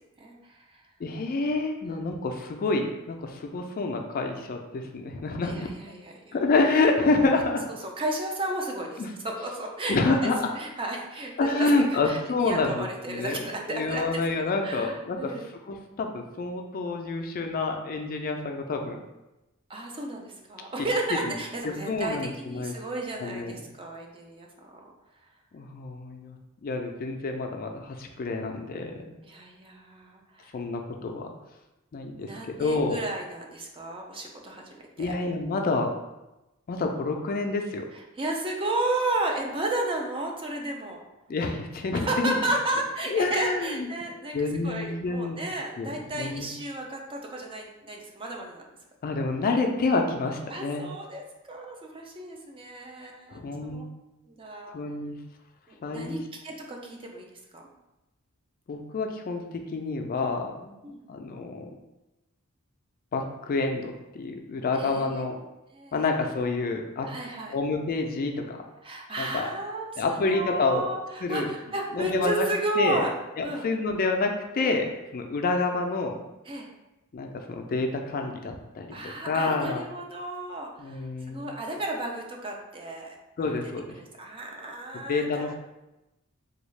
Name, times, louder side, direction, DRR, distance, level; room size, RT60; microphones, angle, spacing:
voice 1, 1.0-5.7 6.3-7.7 9.0-9.1 9.9-10.5 11.4-15.3 15.7-19.0 21.2-21.3 21.6-22.7 23.2-23.6 25.5-29.2 30.5-31.3 31.9-32.3 32.6-33.0 35.0-35.9 36.7-37.9 41.3-42.4 43.1-43.9 44.3-45.4 45.8-46.5 49.0-50.8 53.3-53.9 54.7-55.2 55.8-56.2 58.7-61.7 63.1-65.4 65.9-67.1 67.5-68.6 69.2-69.5 70.0-70.9 71.2-71.5 71.9-72.5 72.8-73.1 73.4-76.2 77.1-79.9 80.8-81.5 83.4-83.8 85.1-85.5, left 3 dB, 40° left, 4 dB, 0.3 m, -28 dB
voice 2, 5.4-6.4 8.0-10.3 10.6-15.4 19.7-24.8 29.2-30.5 32.2-35.1 38.2-41.0 42.0-44.4 44.6-48.6 50.5-51.2 51.5-53.8 54.3-54.8 55.7-57.2 57.5-57.6 60.2-60.3 60.8-61.0 64.8-65.3 65.7-66.0 67.0-67.6 68.8-73.1 73.4-73.7 74.6-74.7 76.5-76.7 78.9-83.2 84.0-85.5, right 2 dB, 25° right, 1 dB, 0.4 m, -33 dB
3.5 x 2.3 x 3.2 m, 0.97 s
head